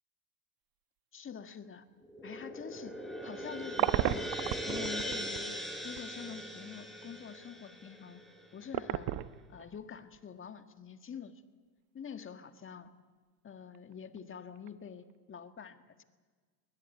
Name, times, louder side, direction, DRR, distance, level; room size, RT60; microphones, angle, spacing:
voice 1, 1.1-1.9 2.2-3.0 3.2-4.4 4.6-8.2 8.5-9.2 9.5-11.3 11.9-12.9 13.4-16.0, left 7 dB, 25° left, 8 dB, 1.8 m, -46 dB
sound 1, 2.0-8.6, equal, ahead, 5.0 m, -40 dB
sound 2, 3.1-5.4 6.0-6.1 8.6-9.8 10.1-10.2 13.7-14.2 14.6-14.7, right 14 dB, 50° right, 1.0 m, -33 dB
21.0 x 20.5 x 8.8 m, 1.5 s
hypercardioid pair, 85°, 45 cm